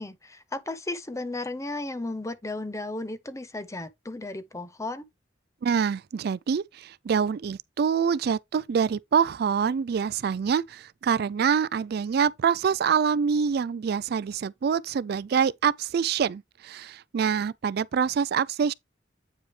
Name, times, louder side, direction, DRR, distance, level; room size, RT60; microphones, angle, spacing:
voice 1, 0.0-5.0, left 2 dB, 15° left, 0.9 m, -34 dB
voice 2, 5.6-18.7, right 6 dB, 60° right, 0.3 m, -25 dB
8.7 x 5.0 x 3.2 m
head